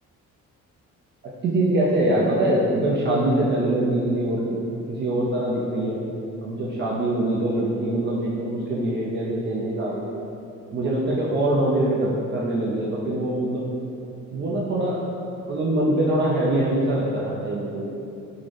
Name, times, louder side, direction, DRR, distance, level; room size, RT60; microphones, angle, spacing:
voice 1, 1.4-4.6 4.9-6.0 6.4-10.1 10.7-13.7 14.3-15.0 15.5-17.8, right 1 dB, 40° right, -5 dB, 0.4 m, -23 dB
3.7 x 2.0 x 3.2 m, 2.7 s
cardioid pair, 90°, 30 cm